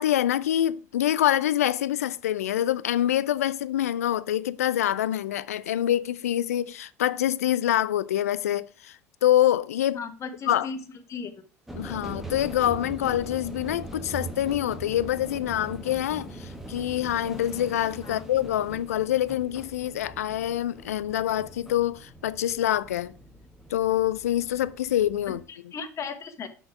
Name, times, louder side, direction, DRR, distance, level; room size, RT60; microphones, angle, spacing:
voice 1, 0.0-10.0 10.5-10.7 11.7-23.1 23.7-25.4, left 12 dB, 75° left, 0.4 m, -26 dB
voice 2, 9.9-10.8 11.1-11.3 18.0-18.2 25.3-26.5, left 5 dB, 40° left, 1.4 m, -36 dB
sound 1, 11.7-25.5, right 1 dB, 5° right, 1.6 m, -41 dB
6.3 x 6.0 x 4.9 m
figure-of-eight pair, 65°, 8 cm